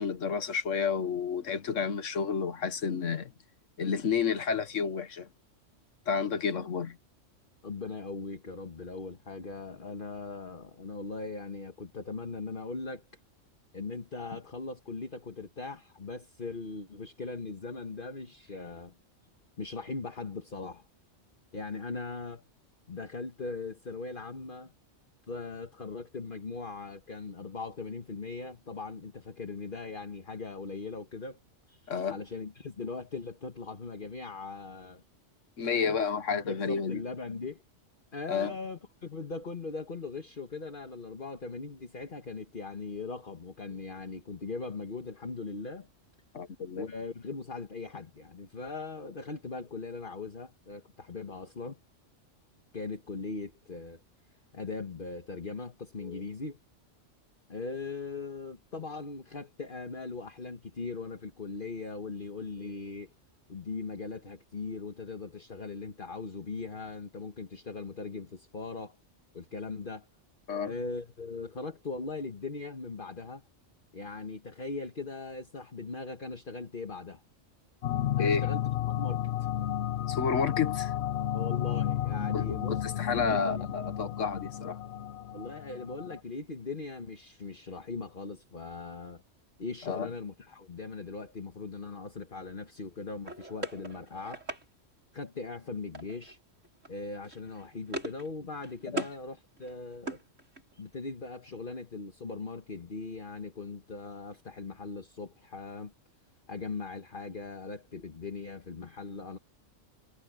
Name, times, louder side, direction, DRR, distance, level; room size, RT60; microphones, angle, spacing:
voice 1, 0.0-3.3 3.8-5.3 6.1-7.0 31.9-32.2 35.6-37.0 38.3-38.5 46.3-46.9 70.5-70.7 78.2-78.4 80.1-80.9 82.3-84.8 89.9-90.1 98.9-99.1, left 6 dB, 80° left, 1.6 m, -30 dB
voice 2, 7.6-13.1 13.7-18.9 19.6-20.8 21.5-22.4 22.9-24.7 25.3-31.4 31.7-35.0 35.7-36.0 36.3-37.6 38.1-45.9 46.7-51.8 52.7-54.0 54.5-56.6 57.5-63.1 63.5-69.0 69.3-70.1 70.6-73.4 73.9-77.2 78.1-78.6 78.9-79.7 81.3-82.8 83.1-83.6 85.3-89.2 89.6-94.4 95.1-96.4 96.9-100.2 100.8-105.9 106.5-109.4, left 4 dB, 45° left, 1.6 m, -40 dB
sound 1, 77.8-86.2, left 11 dB, 65° left, 0.9 m, -32 dB
sound 2, 93.2-94.6 95.9-96.4 96.6-96.9 97.2-98.3 98.5-99.2 99.6-100.8, right 1 dB, 80° right, 6.1 m, -40 dB
omnidirectional pair, 1.3 m